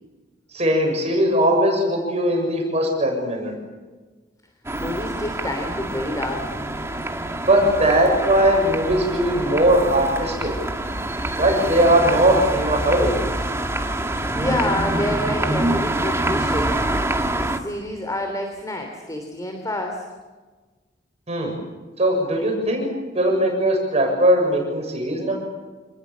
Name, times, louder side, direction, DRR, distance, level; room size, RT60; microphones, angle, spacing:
voice 1, 0.5-3.5 7.4-10.5 11.4-13.2 21.3-21.6 22.0-22.9 23.1-25.3, right 1 dB, 35° right, 1 dB, 6.9 m, -19 dB
sound 1, 4.6-17.6, right 1 dB, 15° right, 1.9 m, -26 dB
voice 2, 4.8-6.6 11.1-11.2 14.3-16.8 17.3-20.1, left 1 dB, 20° left, 4 dB, 3.2 m, -28 dB
27.5 x 21.0 x 7.6 m, 1.3 s
head